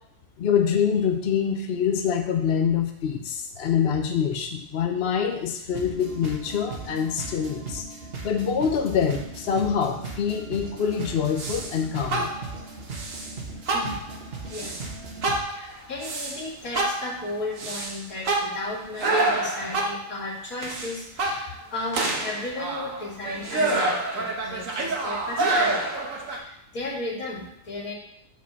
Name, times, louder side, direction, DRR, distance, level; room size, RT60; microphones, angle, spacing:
voice 1, 0.4-7.9 8.2-12.3, left 7 dB, 55° left, 5 dB, 0.8 m, -25 dB
sound 1, 5.7-15.4, right 3 dB, 45° right, 1.4 m, -38 dB
sound 2, 11.4-11.8 12.1-12.6 12.9-13.3 13.7-14.1 14.5-14.9 15.2-16.4 16.7-20.1 20.6-21.6 21.9-26.4, right 2 dB, 65° right, 1.6 m, -27 dB
voice 2, 14.5-15.1 15.5-25.9 26.3-27.9, left 2 dB, 70° left, -2 dB, 2.5 m, -34 dB
6.3 x 5.0 x 6.7 m, 0.78 s
omnidirectional pair, 1.5 m